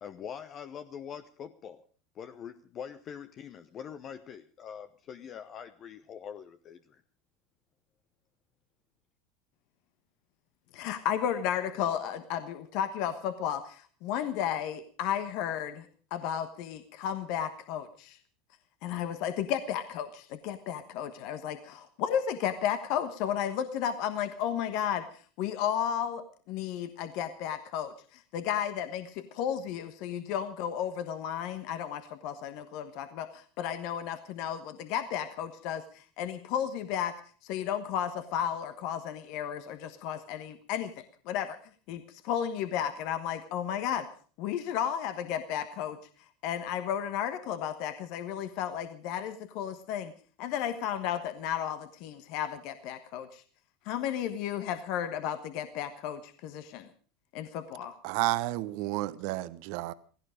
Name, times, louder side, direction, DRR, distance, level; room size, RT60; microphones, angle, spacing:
voice 1, 0.0-1.8 2.1-7.0, left 8 dB, 40° left, 0.9 m, -44 dB
voice 2, 10.7-18.2 18.8-37.2 37.4-41.6 41.9-44.1 44.4-46.0 46.4-50.1 50.4-53.4 53.8-56.9 57.3-58.0, left 9 dB, 60° left, 1.2 m, -33 dB
voice 3, 58.0-59.9, right 17 dB, 60° right, 1.0 m, -31 dB
16.5 x 16.5 x 5.1 m
hypercardioid pair, 80°, 0 cm